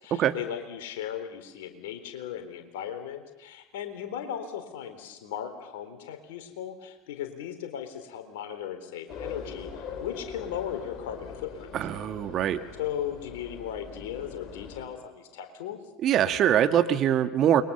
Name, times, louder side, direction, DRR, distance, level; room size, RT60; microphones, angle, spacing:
voice 1, 0.0-11.7 12.8-15.8, left 9 dB, 65° left, 7 dB, 3.8 m, -37 dB
sound 1, 9.1-14.9, left 5 dB, 40° left, 5.8 m, -42 dB
voice 2, 11.7-12.6 16.0-17.6, right 10 dB, 45° right, 9 dB, 1.7 m, -23 dB
29.5 x 22.5 x 7.1 m, 1.1 s
figure-of-eight pair, 75°, 0 cm